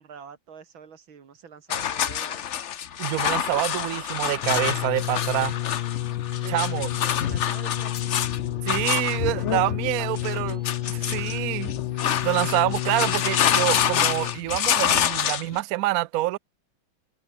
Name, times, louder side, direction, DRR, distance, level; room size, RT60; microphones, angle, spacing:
voice 1, 0.0-2.5 6.3-8.2 10.0-10.1, right 6 dB, 90° right, 3.0 m, -46 dB
sound 1, 1.7-15.6, left 9 dB, 50° left, 0.9 m, -27 dB
sound 2, 2.6-12.5, equal, 5° right, 7.7 m, -60 dB
voice 2, 3.0-5.6 6.5-6.9 8.6-10.6 10.9-11.7 12.2-16.4, right 17 dB, 70° right, 0.8 m, -26 dB
sound 3, 4.4-14.5 15.4-15.5, left 15 dB, 90° left, 1.5 m, -30 dB
omnidirectional pair, 2.1 m